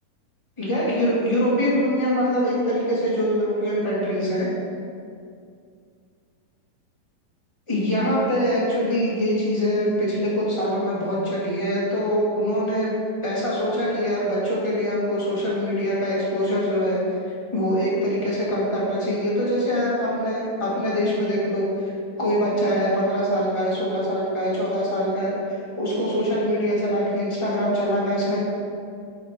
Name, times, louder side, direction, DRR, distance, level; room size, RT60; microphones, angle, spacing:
voice 1, 0.6-4.5 7.7-12.9 13.2-17.0 17.5-21.9 22.2-28.5, equal, 10° left, -8 dB, 1.4 m, -23 dB
11.0 x 5.0 x 4.5 m, 2.3 s
omnidirectional pair, 4.2 m